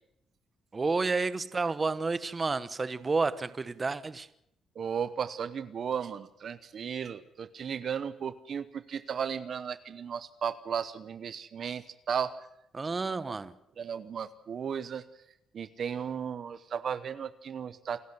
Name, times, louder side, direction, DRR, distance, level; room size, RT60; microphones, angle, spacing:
voice 1, 0.7-4.3 12.7-13.5, right 3 dB, 30° right, 14 dB, 1.1 m, -30 dB
voice 2, 4.8-12.4 13.8-15.0 15.5-18.0, right 7 dB, 55° right, 13 dB, 1.0 m, -35 dB
28.5 x 11.5 x 8.1 m, 0.78 s
cardioid pair, 90°, 0 cm